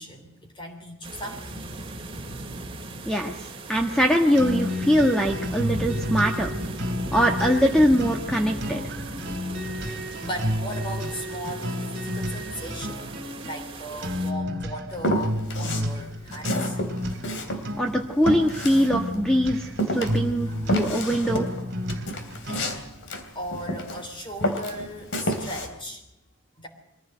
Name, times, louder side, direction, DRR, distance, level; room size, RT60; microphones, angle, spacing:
voice 1, 0.0-1.7 10.2-13.0 13.4-16.8 20.0-20.8 23.3-26.0 26.6-26.7, equal, 25° left, 4 dB, 3.5 m, -37 dB
sound 1, 1.0-14.3, right 1 dB, 25° right, 2.5 m, -37 dB
voice 2, 3.7-6.5 7.1-8.8 17.8-21.5, equal, 5° left, 2 dB, 1.4 m, -22 dB
sound 2, 4.3-22.9, equal, 50° right, 2.5 m, -32 dB
Walk footsteps, 15.0-15.9 16.3-19.4 19.8-24.1 24.4-25.7, equal, 60° left, 3.1 m, -29 dB
23.5 x 16.0 x 7.9 m, 0.92 s
head